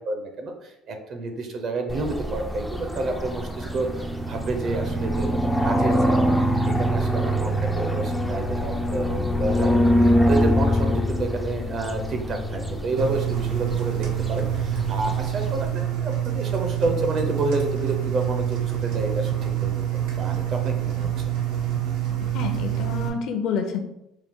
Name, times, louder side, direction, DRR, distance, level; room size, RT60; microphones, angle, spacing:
voice 1, 0.1-6.3 6.7-19.7 20.2-21.1, right 2 dB, 40° right, 5 dB, 0.6 m, -29 dB
sound 1, 1.9-15.7, equal, ahead, 0.3 m, -24 dB
Engine, 13.0-23.1, right 11 dB, 80° right, 0.8 m, -26 dB
voice 2, 22.3-23.8, left 6 dB, 60° left, 6 dB, 0.6 m, -28 dB
4.6 x 2.2 x 3.6 m, 0.86 s
cardioid pair, 155°, 0 cm